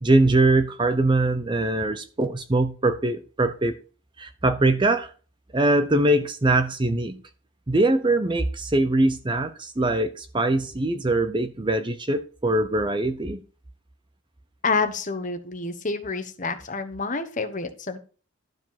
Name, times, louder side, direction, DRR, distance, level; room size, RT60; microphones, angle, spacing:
voice 1, 0.0-3.8 4.2-5.1 5.5-7.2 7.7-13.4, right 2 dB, 20° right, 9 dB, 0.5 m, -22 dB
voice 2, 14.6-18.0, left 4 dB, 35° left, 8 dB, 1.1 m, -28 dB
12.0 x 5.0 x 5.7 m, 0.37 s
head